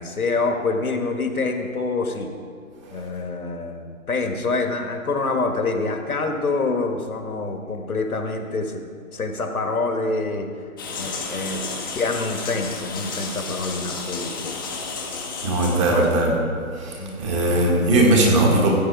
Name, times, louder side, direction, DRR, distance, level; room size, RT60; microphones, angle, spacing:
voice 1, 0.0-2.3 2.9-8.8 9.1-10.5 11.0-11.6 11.9-14.5 15.9-16.1 17.0-17.2, left 3 dB, 85° left, 5 dB, 1.6 m, -26 dB
sound 1, 10.8-16.2, left 4 dB, 15° left, 0.8 m, -32 dB
voice 2, 15.4-16.4 16.7-18.8, right 1 dB, 20° right, -1 dB, 1.7 m, -19 dB
15.0 x 8.0 x 4.7 m, 2.3 s
figure-of-eight pair, 155°, 42 cm